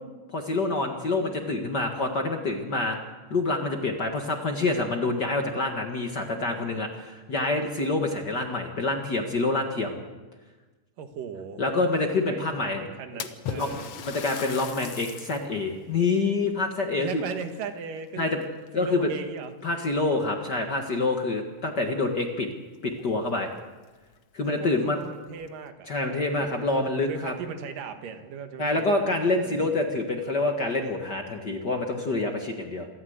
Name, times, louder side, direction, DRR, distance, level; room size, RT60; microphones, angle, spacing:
voice 1, 0.3-3.0 3.3-10.0 11.6-12.8 13.5-13.7 14.0-17.2 18.2-18.4 18.7-19.1 19.6-22.5 22.8-23.5 24.3-25.0 25.9-27.3 28.6-32.9, left 2 dB, 45° left, 3 dB, 1.5 m, -27 dB
voice 2, 11.0-11.6 12.3-13.9 17.0-18.3 18.8-19.5 24.5-26.5 26.8-29.8, right 6 dB, 75° right, 7 dB, 3.1 m, -38 dB
Splash splatter, 13.2-15.5 16.0-16.1 17.0-18.0 18.4-18.9 19.7-19.8 20.2-20.3 22.5-22.6 22.9-23.0 23.6-23.7 24.1-24.2 24.9-25.5, left 8 dB, 65° left, 1.5 m, -38 dB
26.5 x 14.0 x 8.0 m, 1.3 s
omnidirectional pair, 3.9 m